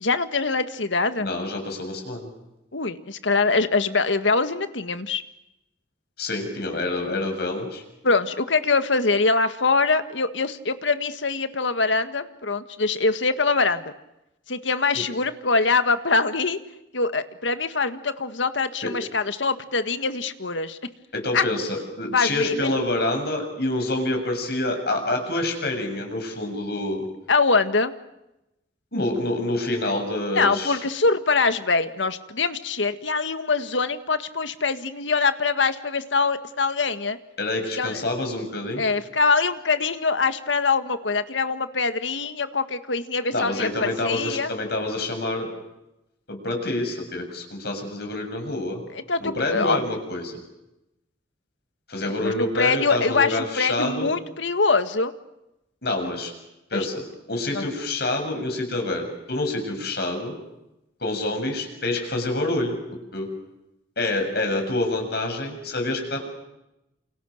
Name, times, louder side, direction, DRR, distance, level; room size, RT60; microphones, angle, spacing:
voice 1, 0.0-1.3 2.7-5.2 8.0-13.9 14.5-16.6 16.9-20.8 21.3-21.4 22.1-22.7 27.3-27.9 30.3-37.2 37.8-38.0 38.8-44.5 48.9-49.8 52.0-55.1 56.7-56.9 57.5-57.6, left 4 dB, 90° left, 10 dB, 1.8 m, -23 dB
voice 2, 1.2-2.3 6.2-7.8 14.9-15.0 18.8-18.9 21.1-27.1 28.9-30.8 37.4-38.8 43.3-45.5 46.3-48.8 49.2-50.4 51.9-54.1 55.8-56.3 56.7-60.4 61.0-62.8 63.1-63.3 64.0-66.2, left 2 dB, 60° left, 4 dB, 7.4 m, -27 dB
29.0 x 28.5 x 6.6 m, 0.92 s
head